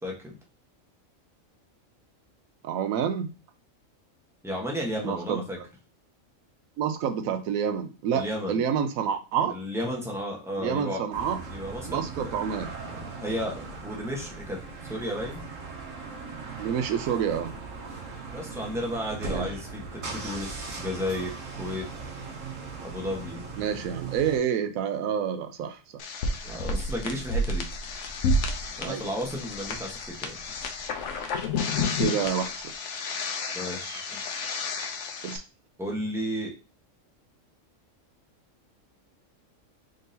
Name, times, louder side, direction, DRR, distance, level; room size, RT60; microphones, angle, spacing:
voice 1, 0.0-0.4 4.4-5.6 8.1-8.6 9.5-11.0 11.5-12.3 12.9-15.4 18.3-21.9 22.8-23.4 26.4-27.6 28.8-30.4 33.5-34.2 35.8-36.5, equal, ahead, -1 dB, 0.9 m, -33 dB
voice 2, 2.6-3.3 5.0-5.4 6.8-9.5 10.6-11.4 11.8-12.7 16.6-17.5 19.3-19.5 23.6-25.8 26.3-26.4 28.8-29.0 32.0-32.5 35.2-35.4, right 8 dB, 90° right, 9 dB, 1.0 m, -28 dB
sound 1, 11.1-24.4, right 4 dB, 70° right, 1.3 m, -39 dB
sound 2, 26.0-35.4, left 2 dB, 70° left, 0.9 m, -30 dB
3.8 x 3.8 x 2.7 m, 0.31 s
omnidirectional pair, 1.4 m